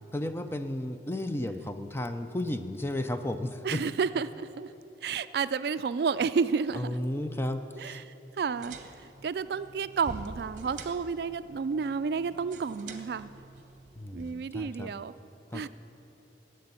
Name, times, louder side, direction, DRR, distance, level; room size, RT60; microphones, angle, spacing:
voice 1, 0.1-3.8 6.7-8.0 14.0-14.9 15.5-15.7, left 1 dB, 15° left, 8 dB, 0.4 m, -33 dB
voice 2, 3.6-4.7 5.0-6.9 7.8-8.8 9.0-13.3 14.1-15.1 15.5-15.7, right 5 dB, 60° right, 14 dB, 0.3 m, -31 dB
sound 1, 8.4-14.3, right 3 dB, 45° right, 0.9 m, -47 dB
11.0 x 7.8 x 9.6 m, 3.0 s
head